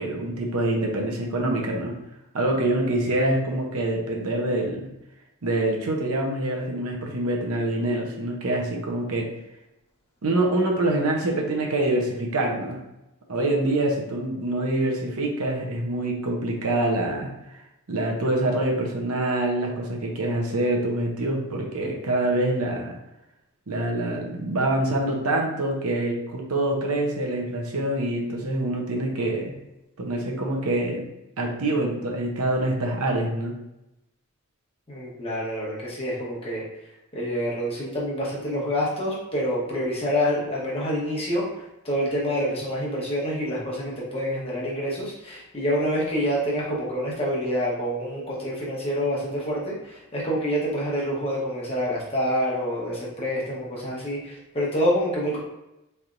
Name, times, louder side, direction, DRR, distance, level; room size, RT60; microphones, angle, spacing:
voice 1, 0.0-1.9 2.3-4.9 5.4-9.3 10.2-12.8 13.3-17.3 17.9-22.9 23.7-29.5 30.0-31.1 31.4-33.5, right 1 dB, 75° right, 0 dB, 0.8 m, -25 dB
voice 2, 34.9-36.6 37.1-41.5 41.8-55.4, equal, 25° left, -5 dB, 1.1 m, -27 dB
4.2 x 3.3 x 2.5 m, 0.92 s
head